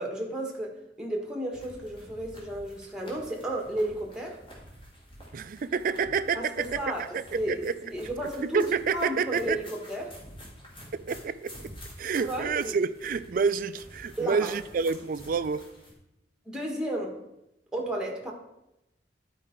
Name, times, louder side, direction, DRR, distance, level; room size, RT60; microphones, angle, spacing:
voice 1, 0.0-4.4 6.3-7.1 7.3-7.6 7.9-8.6 8.9-10.1 12.2-12.8 14.2-14.5 16.4-17.2 17.7-18.3, right 1 dB, 5° right, 1.3 m, -33 dB
sound 1, 1.5-15.9, equal, 30° left, 2.2 m, -49 dB
voice 2, 5.3-7.7 8.4-9.6 10.9-11.5 12.0-15.7, right 5 dB, 50° right, 0.4 m, -28 dB
11.0 x 4.8 x 4.4 m
head